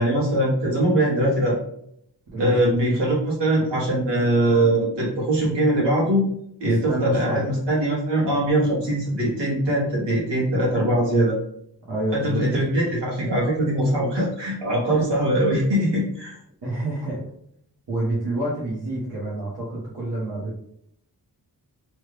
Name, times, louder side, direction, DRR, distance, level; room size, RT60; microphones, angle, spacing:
voice 1, 0.0-1.6 2.4-6.3 6.6-11.4 12.1-16.3, right 1 dB, 85° right, -5 dB, 1.4 m, -22 dB
voice 2, 2.3-2.7 6.6-7.5 11.9-12.4 14.8-15.0 16.6-17.2 17.9-20.6, right 1 dB, 65° right, -6 dB, 1.1 m, -28 dB
3.2 x 2.3 x 3.2 m, 0.71 s
wide cardioid pair, 105°, 41 cm